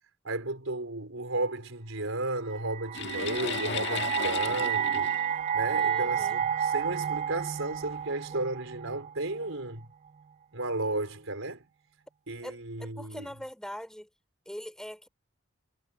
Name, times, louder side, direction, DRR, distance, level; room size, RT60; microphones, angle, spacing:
voice 1, 0.2-5.1 5.5-9.9 10.5-11.6 12.3-13.3, right 2 dB, 75° right, 4.9 m, -34 dB
sound 1, 2.5-9.6, right 8 dB, 35° right, 0.3 m, -31 dB
sound 2, 2.9-6.3 7.1-7.2 7.8-8.0, left 5 dB, 60° left, 1.7 m, -35 dB
voice 2, 5.7-6.4 8.3-8.4 12.4-14.1 14.4-15.1, equal, 5° left, 3.2 m, -42 dB
head